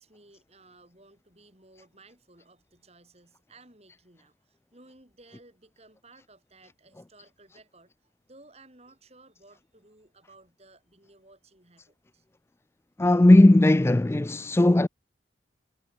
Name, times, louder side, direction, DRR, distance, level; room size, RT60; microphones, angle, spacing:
voice 1, 0.0-12.3, right 2 dB, 35° right, 7.9 m, -56 dB
voice 2, 13.0-14.9, left 1 dB, 15° left, 0.3 m, -17 dB
head